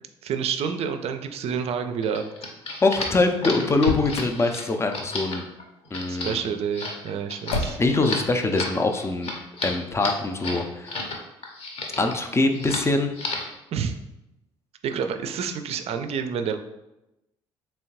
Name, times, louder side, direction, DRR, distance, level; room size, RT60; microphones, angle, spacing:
voice 1, 0.2-2.2 6.1-7.8 13.7-13.9 14.8-16.6, right 7 dB, 45° right, 7 dB, 0.4 m, -28 dB
sound 1, 2.0-11.2 11.4-12.2 12.5-12.9 13.1-13.5, left 2 dB, 40° left, 0.8 m, -33 dB
voice 2, 2.8-5.4 5.9-6.5 7.8-9.3 9.6-11.0 12.0-13.1, left 3 dB, 15° left, 5 dB, 0.5 m, -23 dB
Motor vehicle (road), 3.7-4.4 7.5-8.1, left 2 dB, 75° left, 0.4 m, -29 dB
3.5 x 3.1 x 2.9 m, 0.92 s
figure-of-eight pair, 50°, 15 cm